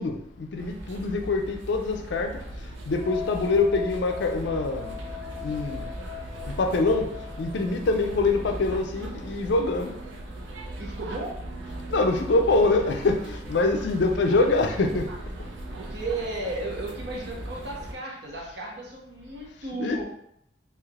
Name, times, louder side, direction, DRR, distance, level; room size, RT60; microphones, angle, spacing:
voice 1, 0.0-2.3 2.9-4.9 5.4-5.8 6.6-7.1 7.4-10.0 11.9-15.1 19.8-20.0, left 3 dB, 70° left, 4 dB, 0.4 m, -24 dB
sound 1, 0.6-17.9, right 1 dB, 90° right, 0.5 m, -38 dB
sound 2, 2.9-8.8, left 11 dB, 15° left, 0.6 m, -41 dB
voice 2, 10.8-11.3 15.8-20.0, right 2 dB, 65° right, -2 dB, 0.9 m, -34 dB
3.2 x 2.9 x 2.4 m, 0.74 s
head